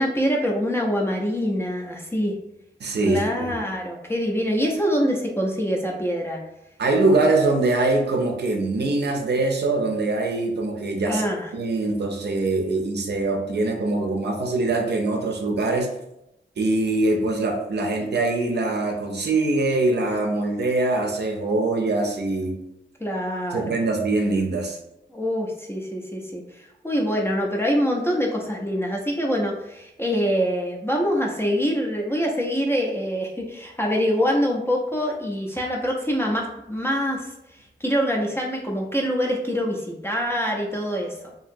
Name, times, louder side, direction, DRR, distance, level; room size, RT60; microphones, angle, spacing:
voice 1, 0.0-2.4 3.0-6.4 11.1-11.5 23.0-23.8 25.1-37.3 37.8-41.2, equal, 10° left, -1 dB, 0.4 m, -25 dB
voice 2, 2.8-3.5 6.8-11.2 11.5-15.9 16.6-22.6 23.5-24.8, right 2 dB, 60° right, 2 dB, 0.5 m, -23 dB
2.8 x 2.6 x 2.5 m, 0.84 s
wide cardioid pair, 110°, 20 cm